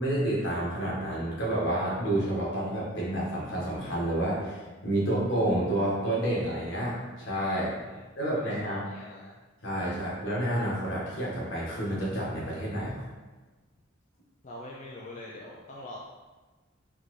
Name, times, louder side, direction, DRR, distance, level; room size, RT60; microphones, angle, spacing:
voice 1, 0.0-7.7 8.2-8.8 9.6-13.0, right 1 dB, 70° left, -6 dB, 1.4 m, -29 dB
voice 2, 7.5-8.1 8.3-9.4 14.4-16.0, left 1 dB, 40° left, -4 dB, 0.4 m, -44 dB
4.0 x 3.4 x 3.1 m, 1.2 s
head